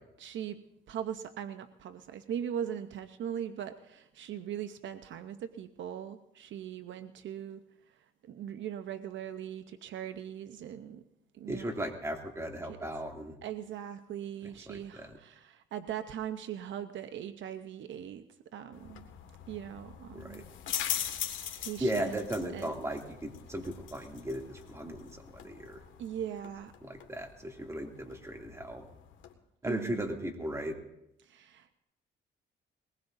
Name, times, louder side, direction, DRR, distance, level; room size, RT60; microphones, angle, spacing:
voice 1, 0.2-0.6 0.9-7.6 8.3-11.0 11.3-11.9 12.7-12.8 13.4-18.3 18.5-19.1 19.5-20.4 20.9-22.2 22.5-22.8 26.0-26.7 29.6-30.2 31.2-31.8, right 9 dB, 70° right, 9 dB, 0.8 m, -40 dB
voice 2, 11.5-13.3 14.7-15.1 20.1-20.4 21.8-25.8 26.8-28.9 29.6-30.8, right 1 dB, 15° right, 1 dB, 2.6 m, -36 dB
sound 1, 18.7-29.3, left 9 dB, 80° left, 1.8 m, -42 dB
22.0 x 20.0 x 2.7 m, 0.83 s
cardioid pair, 90°, 20 cm